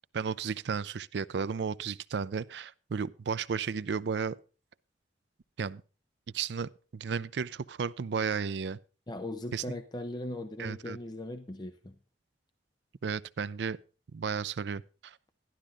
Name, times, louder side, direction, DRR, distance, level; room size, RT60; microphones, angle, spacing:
voice 1, 0.1-4.4 5.6-5.8 6.3-8.8 9.5-9.6 10.6-11.0 13.0-13.8 14.1-15.2, right 6 dB, 75° right, 0.4 m, -33 dB
voice 2, 9.1-12.0, left 1 dB, 25° left, 0.6 m, -39 dB
12.0 x 12.0 x 3.7 m
head